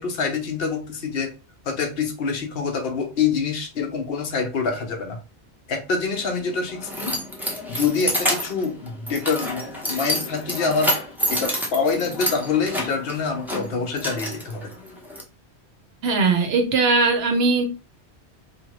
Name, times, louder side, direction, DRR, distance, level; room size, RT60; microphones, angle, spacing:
voice 1, 0.0-1.3 1.7-5.2 5.7-7.2 7.7-11.0 11.3-14.7, left 5 dB, 65° left, 0.8 m, -26 dB
Keys jangling, 6.1-15.2, equal, ahead, 0.4 m, -29 dB
voice 2, 16.0-17.6, right 4 dB, 65° right, 0.8 m, -19 dB
2.8 x 2.2 x 2.9 m
omnidirectional pair, 1.2 m